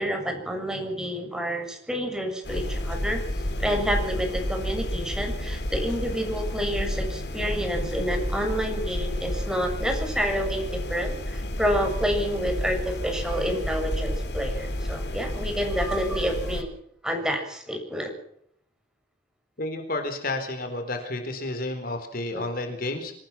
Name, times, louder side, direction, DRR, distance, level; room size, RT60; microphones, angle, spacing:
voice 1, 0.0-3.2 3.6-16.7 17.0-18.1 22.3-22.5, equal, 5° right, 3 dB, 7.0 m, -29 dB
sound 1, 2.4-16.6, left 1 dB, 70° left, 3.4 m, -31 dB
voice 2, 19.6-23.1, left 2 dB, 55° left, 7 dB, 4.1 m, -31 dB
26.5 x 18.5 x 5.9 m, 0.66 s
head